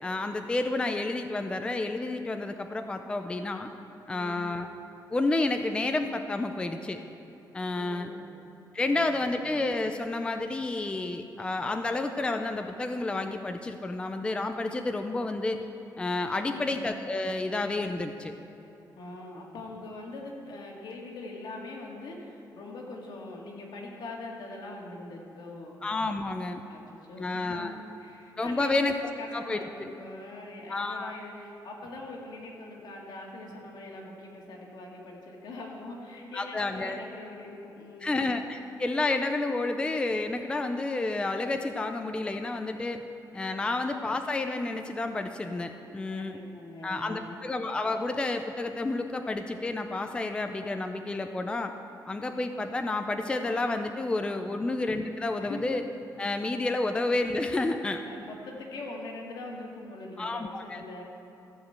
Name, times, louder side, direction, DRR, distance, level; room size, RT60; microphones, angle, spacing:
voice 1, 0.0-3.7 4.1-4.7 5.1-7.0 7.5-8.1 8.7-15.7 16.0-18.3 25.8-26.6 27.2-27.8 28.4-28.9 29.3-29.9 30.7-31.1 36.3-37.0 38.0-43.0 43.3-46.4 46.8-51.7 52.1-55.8 56.2-58.0 60.2-60.8, left 2 dB, 15° left, 6 dB, 0.4 m, -30 dB
voice 2, 4.1-4.5 7.7-8.3 8.8-9.0 9.3-9.5 16.4-16.7 19.0-25.8 26.7-26.8 27.1-38.2 46.1-47.4 54.5-54.7 55.4-55.6 58.1-61.0, left 2 dB, 80° left, -1 dB, 2.0 m, -42 dB
14.5 x 5.1 x 8.1 m, 3.0 s
wide cardioid pair, 175°, 8 cm